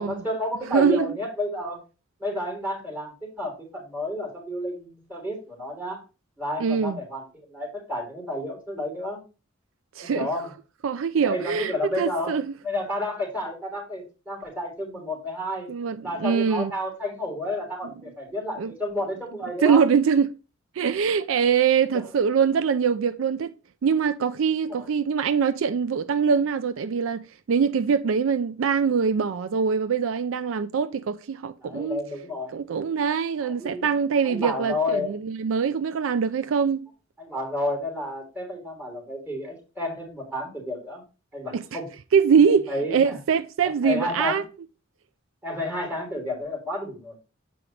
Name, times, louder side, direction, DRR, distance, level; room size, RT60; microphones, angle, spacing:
voice 1, 0.0-1.8 2.2-6.0 6.4-7.2 7.5-9.2 10.0-10.5 11.2-12.3 12.6-15.7 16.0-19.8 21.9-22.0 24.7-24.8 31.6-32.5 33.4-33.9 34.2-35.1 37.2-41.0 41.3-41.9 42.7-43.2 43.6-44.4 45.4-47.1, left 1 dB, 10° right, 3.4 m, -31 dB
voice 2, 0.7-1.2 6.6-7.0 10.0-10.3 10.8-12.5 15.7-16.7 18.6-18.7 19.6-20.4 20.8-23.5 23.8-27.2 27.5-32.0 32.5-36.9 41.5-41.8 42.1-44.4, right 6 dB, 70° right, 0.4 m, -23 dB
7.8 x 4.9 x 3.2 m
head